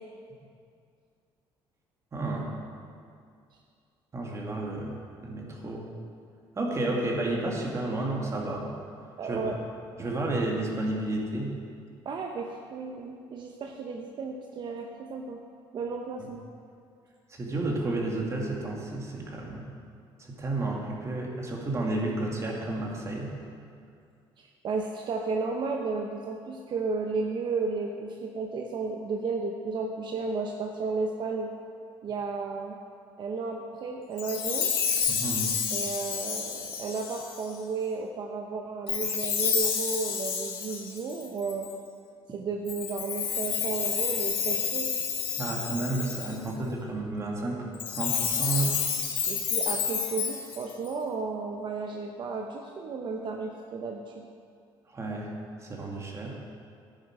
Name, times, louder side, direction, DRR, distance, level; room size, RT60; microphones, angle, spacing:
voice 1, 2.1-2.5 4.1-5.9 6.6-8.7 9.2-9.5 10.0-11.6 17.3-19.6 20.3-23.3 35.1-35.5 45.4-48.8 54.9-55.3 55.6-56.3, right 2 dB, 30° right, -2 dB, 2.2 m, -31 dB
voice 2, 9.2-9.5 12.0-15.4 15.7-16.4 24.4-31.5 32.0-32.8 33.2-34.7 35.7-41.7 42.3-44.9 49.3-54.2, right 4 dB, 55° right, 2 dB, 0.8 m, -33 dB
Chime, 34.2-37.5 38.9-41.7 42.7-46.5 47.7-50.9, left 7 dB, 70° left, 1.6 m, -30 dB
11.0 x 9.9 x 4.8 m, 2.3 s
cardioid pair, 110°, 10 cm